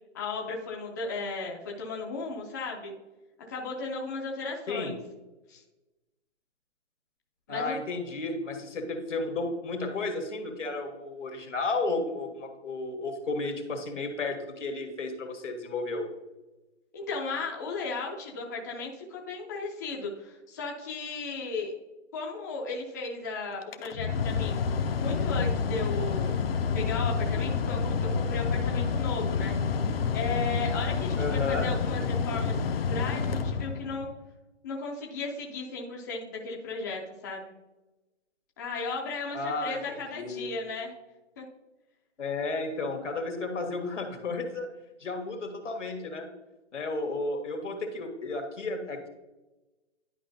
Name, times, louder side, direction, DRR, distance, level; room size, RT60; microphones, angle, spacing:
voice 1, 0.1-2.9 3.5-4.9 5.5-5.6 7.5-7.8 16.9-21.7 22.1-24.6 25.0-26.3 26.7-29.5 30.1-34.1 34.6-37.5 38.6-40.9 41.4-41.5, left 3 dB, 15° left, -2 dB, 0.5 m, -35 dB
voice 2, 7.5-16.1 31.2-31.7 39.3-40.5 42.2-44.7 45.0-46.3 46.7-49.1, left 3 dB, 80° left, 4 dB, 1.7 m, -33 dB
Mechanical fan, 23.6-34.1, left 5 dB, 55° left, 0.7 m, -28 dB
11.0 x 4.8 x 2.6 m, 1.1 s
hypercardioid pair, 150°, 36 cm